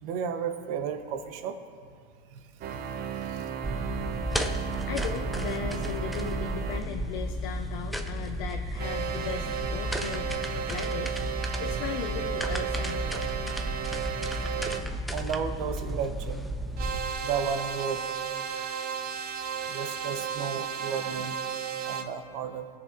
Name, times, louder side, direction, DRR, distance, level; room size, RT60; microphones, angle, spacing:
voice 1, 0.0-1.6 2.3-2.4 2.7-3.5 15.1-16.5 17.2-18.1 19.7-21.4 21.8-22.7, right 7 dB, 60° right, 8 dB, 1.0 m, -33 dB
sound 1, 2.6-6.8 8.8-14.8 16.8-22.0, right 8 dB, 30° right, 0.7 m, -34 dB
sound 2, 3.6-17.0, equal, ahead, 0.3 m, -33 dB
voice 2, 4.8-10.3 10.7-13.2, left 8 dB, 60° left, 5 dB, 0.7 m, -37 dB
19.0 x 6.8 x 2.6 m, 2.1 s
hypercardioid pair, 115°, 31 cm